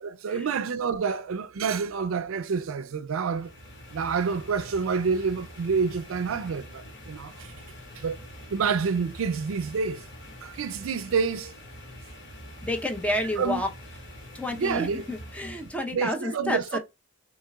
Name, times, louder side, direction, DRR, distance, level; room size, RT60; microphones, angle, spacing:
voice 1, 0.0-3.5 3.9-7.5 8.0-8.2 8.5-10.0 10.4-11.5 13.4-13.6 14.6-15.0 15.9-16.8, right 5 dB, 75° right, 0.4 m, -28 dB
sound 1, 3.3-15.9, equal, 60° left, 2.1 m, -45 dB
voice 2, 12.6-13.7 14.3-16.8, left 1 dB, 5° left, 0.7 m, -30 dB
6.6 x 3.2 x 2.3 m
head